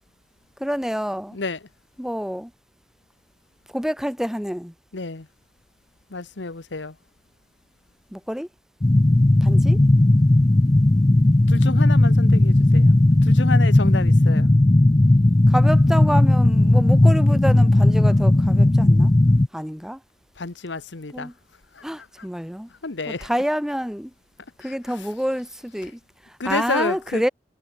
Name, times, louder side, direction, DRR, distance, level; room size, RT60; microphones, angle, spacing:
voice 1, 0.6-1.4 2.0-2.5 3.7-4.7 8.1-8.5 9.4-9.8 15.5-19.1 19.5-20.0 21.1-21.3 21.8-22.7 23.1-24.1 24.6-27.3, equal, 5° right, 4.8 m, -27 dB
voice 2, 4.9-5.3 6.1-7.0 11.5-13.0 13.2-14.5 20.4-21.3 21.7-21.8 22.8-23.3 24.6-24.7 26.4-27.2, left 3 dB, 70° left, 1.1 m, -30 dB
sound 1, 8.8-19.5, left 1 dB, 20° left, 0.4 m, -16 dB
head